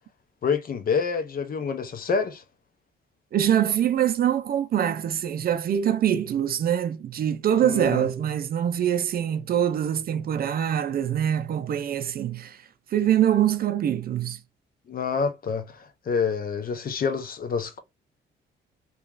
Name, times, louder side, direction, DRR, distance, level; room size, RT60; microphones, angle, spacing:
voice 1, 0.4-2.4 7.6-8.1 14.9-17.8, left 5 dB, 45° left, 0.7 m, -27 dB
voice 2, 3.3-12.6 12.9-14.4, right 10 dB, 50° right, 0.4 m, -24 dB
2.9 x 2.4 x 2.4 m
cardioid pair, 90°, 20 cm